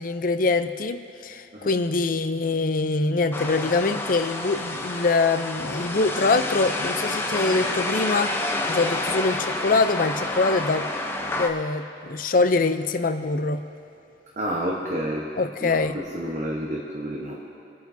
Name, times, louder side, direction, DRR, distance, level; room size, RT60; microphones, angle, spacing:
voice 1, 0.0-10.9 11.3-13.6 15.4-16.0, left 3 dB, 50° left, 9 dB, 0.5 m, -24 dB
sound 1, 3.3-11.5, left 2 dB, 10° left, 0.7 m, -29 dB
voice 2, 14.4-15.3 15.6-17.5, equal, 40° right, -3 dB, 1.1 m, -30 dB
27.0 x 9.2 x 2.7 m, 2.9 s
head